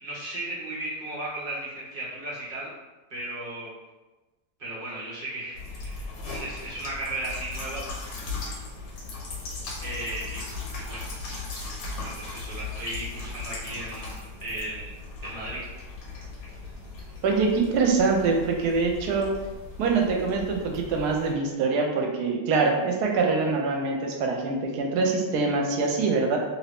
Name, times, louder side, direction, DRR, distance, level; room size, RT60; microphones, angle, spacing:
voice 1, 0.0-2.7 3.1-3.7 4.6-7.8 9.8-10.4 10.8-11.0 12.0-15.6, right 1 dB, 45° right, -6 dB, 0.9 m, -35 dB
sound 1, 5.5-21.3, left 3 dB, 70° left, 1.0 m, -38 dB
voice 2, 17.2-19.3 19.8-26.4, right 4 dB, 80° right, 2 dB, 1.1 m, -24 dB
2.7 x 2.6 x 3.4 m, 1.1 s
omnidirectional pair, 1.7 m